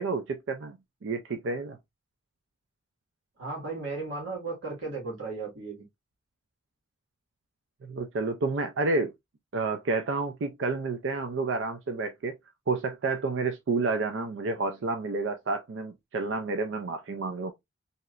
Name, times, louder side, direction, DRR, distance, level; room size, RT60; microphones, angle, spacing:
voice 1, 0.0-1.8 7.8-9.1 9.5-12.3 12.7-17.5, right 3 dB, 70° right, 0.4 m, -30 dB
voice 2, 3.4-5.8, right 3 dB, 85° right, 1.6 m, -35 dB
3.1 x 2.8 x 2.4 m
head